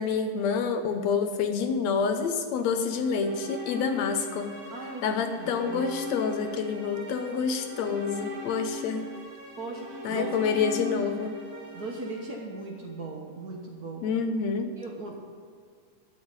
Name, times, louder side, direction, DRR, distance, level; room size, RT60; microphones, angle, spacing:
voice 1, 0.0-4.5 5.0-9.0 10.0-11.3 14.0-14.7, left 5 dB, 70° left, 6 dB, 1.8 m, -28 dB
sound 1, 2.8-13.0, left 2 dB, 30° right, 2.2 m, -39 dB
voice 2, 4.7-5.8 9.5-10.5 11.7-14.1 14.8-15.2, right 3 dB, 70° right, -1 dB, 0.9 m, -38 dB
12.0 x 6.5 x 8.8 m, 2.1 s
omnidirectional pair, 3.7 m